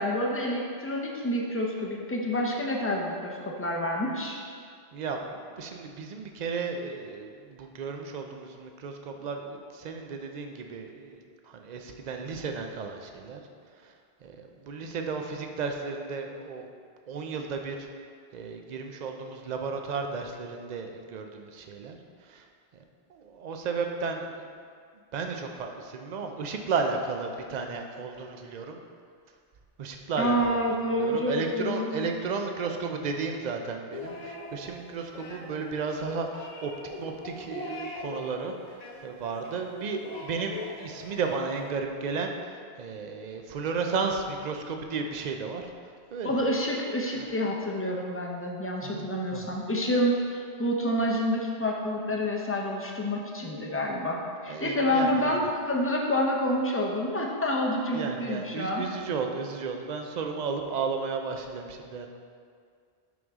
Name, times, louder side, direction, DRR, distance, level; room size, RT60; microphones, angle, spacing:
voice 1, 0.0-4.4 30.2-32.1 46.2-58.8, equal, 15° left, -1 dB, 0.6 m, -28 dB
voice 2, 4.9-13.4 13.8-13.9 14.2-16.7 17.1-17.9 18.3-22.5 23.1-24.5 25.1-28.8 29.8-36.7 37.0-45.7 46.1-46.5 47.1-47.3 48.8-49.6 54.5-55.4 57.9-62.1, right 4 dB, 50° right, 4 dB, 0.6 m, -34 dB
sound 1, 33.9-41.7, left 2 dB, 45° left, 0.9 m, -41 dB
6.1 x 5.4 x 3.6 m, 2.1 s
omnidirectional pair, 1.1 m